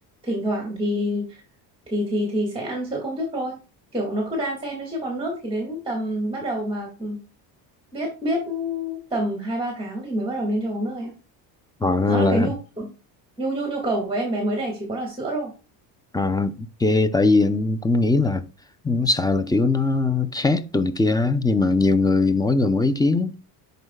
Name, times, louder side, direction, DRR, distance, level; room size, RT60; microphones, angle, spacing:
voice 1, 0.2-1.4 1.9-3.6 3.9-7.2 7.9-11.2 12.1-12.9 13.4-15.5, equal, 10° right, 2.1 m, -27 dB
voice 2, 11.8-12.5 16.1-18.4 18.8-23.4, left 3 dB, 10° left, 0.6 m, -20 dB
10.5 x 4.0 x 2.3 m
supercardioid pair, 95°, 43 cm